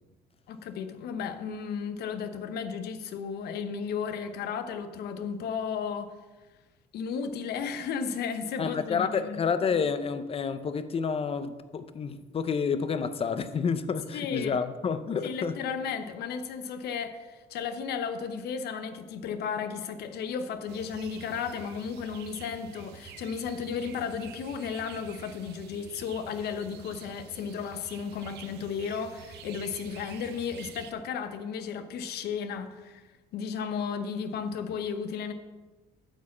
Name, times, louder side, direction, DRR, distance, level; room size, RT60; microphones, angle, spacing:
voice 1, 0.5-6.2 6.9-9.4 14.1-14.6 15.2-33.0 33.3-35.3, left 6 dB, 70° left, 0.9 m, -34 dB
voice 2, 8.6-15.6, left 6 dB, 35° left, 0.6 m, -29 dB
sound 1, 20.7-30.9, right 8 dB, 80° right, 0.7 m, -48 dB
9.1 x 4.8 x 7.2 m
cardioid pair, 110°, 17 cm